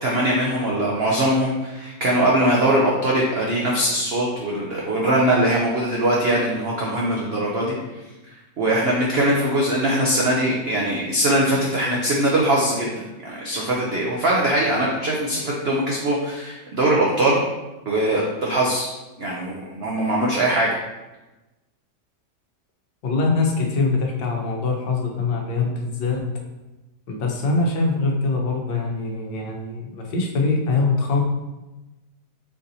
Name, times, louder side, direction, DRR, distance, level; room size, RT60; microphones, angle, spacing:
voice 1, 0.0-7.8 8.6-17.4 17.9-18.9 19.2-20.7, right 1 dB, 80° right, -3 dB, 0.5 m, -21 dB
voice 2, 23.0-26.2 27.1-31.2, left 3 dB, 80° left, 1 dB, 1.5 m, -23 dB
4.6 x 2.7 x 4.0 m, 1.1 s
omnidirectional pair, 1.9 m